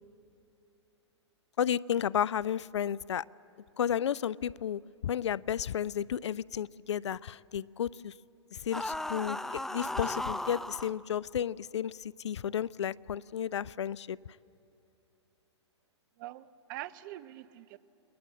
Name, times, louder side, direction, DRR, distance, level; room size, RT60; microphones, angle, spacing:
voice 1, 1.6-3.2 3.8-8.1 8.5-14.2, left 9 dB, 75° left, 23 dB, 0.5 m, -32 dB
sound 1, 8.7-10.9, left 1 dB, ahead, 0.6 m, -36 dB
voice 2, 16.2-17.8, right 15 dB, 45° right, 16 dB, 0.8 m, -44 dB
29.0 x 20.5 x 7.6 m, 2.8 s
hypercardioid pair, 120°, 15 cm